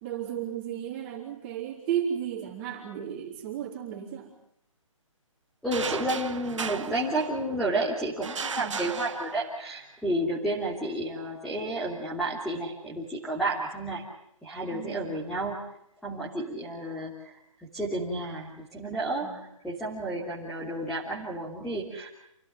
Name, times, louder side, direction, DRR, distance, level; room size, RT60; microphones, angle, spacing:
voice 1, 0.0-4.3 8.6-8.9 14.7-15.1 19.2-19.4, right 9 dB, 20° right, -1 dB, 4.0 m, -34 dB
voice 2, 5.6-14.0 14.4-15.6 16.0-17.3 17.7-22.1, right 1 dB, ahead, -5 dB, 3.2 m, -31 dB
sound 1, 5.7-7.7 8.2-9.8, right 5 dB, 60° right, 1.9 m, -36 dB
28.5 x 17.0 x 9.6 m, 0.78 s
hypercardioid pair, 170°, 17 cm